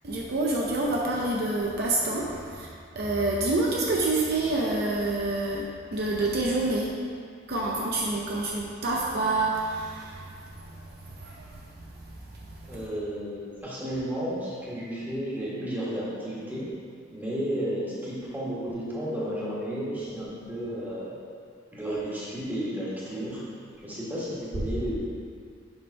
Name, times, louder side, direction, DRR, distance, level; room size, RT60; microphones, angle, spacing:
voice 1, 0.0-2.7 2.9-5.6 5.9-6.9 7.5-12.8, right 2 dB, 55° right, -3 dB, 0.7 m, -28 dB
voice 2, 12.7-16.7 17.1-21.2 21.7-23.5 23.8-25.0, equal, 10° right, -8 dB, 1.6 m, -32 dB
7.0 x 3.7 x 5.3 m, 2.2 s
head